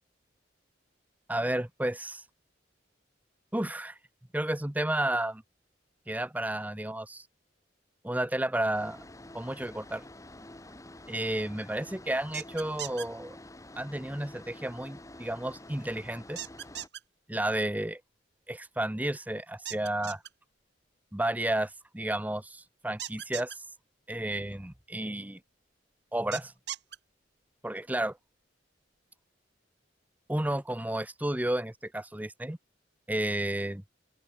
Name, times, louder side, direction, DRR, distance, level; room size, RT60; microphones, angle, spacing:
voice 1, 1.3-2.2 3.5-4.0 4.3-5.4 6.1-7.2 8.0-9.0 9.3-10.0 11.1-13.4 13.8-16.4 17.3-18.0 18.5-20.2 21.1-23.6 24.1-25.4 26.1-26.5 27.6-28.2 30.3-32.6 33.1-33.8, right 1 dB, 10° right, 0.8 m, -32 dB
sound 1, 8.7-16.9, left 1 dB, 15° left, 1.9 m, -49 dB
sound 2, 12.3-13.1 16.4-17.0 19.7-20.3 23.0-23.6 26.3-27.0, right 11 dB, 65° right, 2.3 m, -38 dB
open air
head